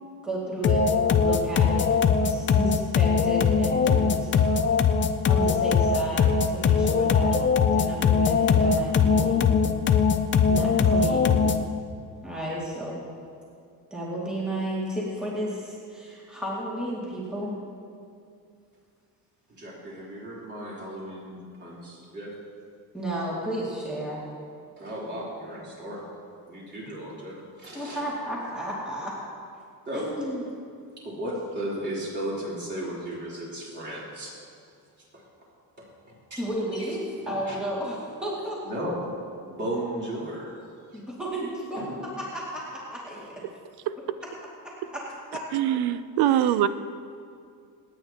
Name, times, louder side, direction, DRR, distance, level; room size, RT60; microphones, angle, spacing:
voice 1, 0.2-4.3 5.3-7.4 7.7-9.5 10.5-11.3 12.2-13.0 13.9-17.6 22.9-24.2 27.7-29.2 29.9-30.4 36.4-38.6 40.9-41.8 42.2-43.3 44.6-45.0 45.3-45.4 46.2-46.5, right 1 dB, ahead, -6 dB, 2.3 m, -33 dB
sound 1, 0.6-11.7, left 6 dB, 30° left, 0.5 m, -21 dB
voice 2, 19.5-22.3 24.8-26.0 26.5-28.0 29.9-30.1 31.0-34.3 35.1-35.2 35.8-35.9 36.3-36.5 36.7-36.8 37.5-37.6 38.6-39.0 39.4-40.6 40.9-41.0 41.8-42.0, right 1 dB, 30° right, -6 dB, 3.7 m, -35 dB
voice 3, 45.5-46.7, right 11 dB, 80° right, 13 dB, 0.7 m, -23 dB
27.5 x 9.3 x 3.0 m, 2.4 s
cardioid pair, 150°, 38 cm